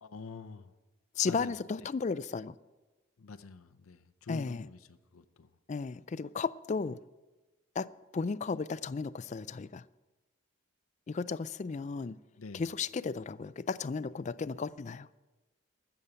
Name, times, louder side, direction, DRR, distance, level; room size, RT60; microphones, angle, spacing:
voice 1, 0.0-0.7 1.2-1.9 3.2-5.5 12.4-12.7, left 4 dB, 85° left, 0.6 m, -47 dB
voice 2, 1.2-2.5 4.3-4.7 5.7-7.0 7.8-7.9 8.1-9.8 11.1-12.2 12.5-15.1, left 5 dB, 35° left, 0.3 m, -34 dB
14.5 x 7.1 x 8.9 m
head